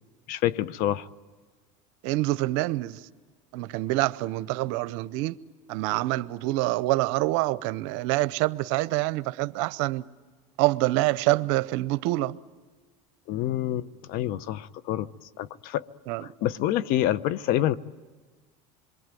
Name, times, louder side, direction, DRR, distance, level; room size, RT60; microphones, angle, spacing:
voice 1, 0.3-1.1 13.3-15.1 15.4-15.9 16.2-17.8, left 13 dB, 65° left, 0.8 m, -27 dB
voice 2, 2.0-3.0 3.5-5.3 5.7-10.0 10.6-12.4 16.1-16.3, right 19 dB, 75° right, 0.8 m, -26 dB
27.0 x 23.0 x 9.2 m
supercardioid pair, 110°, 16 cm